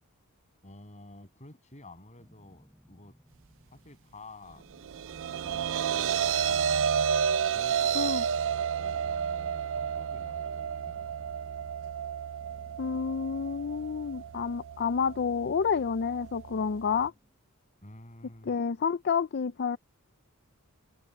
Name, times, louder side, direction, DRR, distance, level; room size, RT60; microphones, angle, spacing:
voice 1, 0.6-3.2 3.7-4.6 5.3-7.1 7.5-11.3 17.8-18.6, left 2 dB, 30° left, 7.7 m, -51 dB
sound 1, 2.2-4.2 4.5-6.8 7.1-9.5 9.8-12.1 12.4-14.7 15.0-17.4, equal, ahead, 7.9 m, -62 dB
sound 2, 4.7-17.1, right 7 dB, 60° right, 0.5 m, -31 dB
voice 2, 12.8-17.1 18.5-19.8, left 6 dB, 50° left, 0.4 m, -29 dB
head